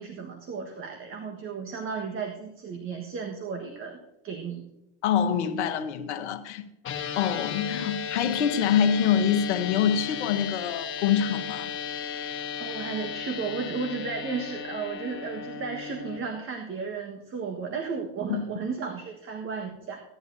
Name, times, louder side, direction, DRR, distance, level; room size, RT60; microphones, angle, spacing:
voice 1, 0.0-4.0 4.2-4.6 12.6-20.0, right 5 dB, 40° right, 1.5 m, -34 dB
voice 2, 5.0-6.6 7.2-11.7 18.3-18.4, left 8 dB, 80° left, 1.1 m, -25 dB
sound 1, 6.8-16.2, left 7 dB, 35° left, 1.4 m, -35 dB
16.5 x 10.5 x 2.7 m
hypercardioid pair, 100°, 33 cm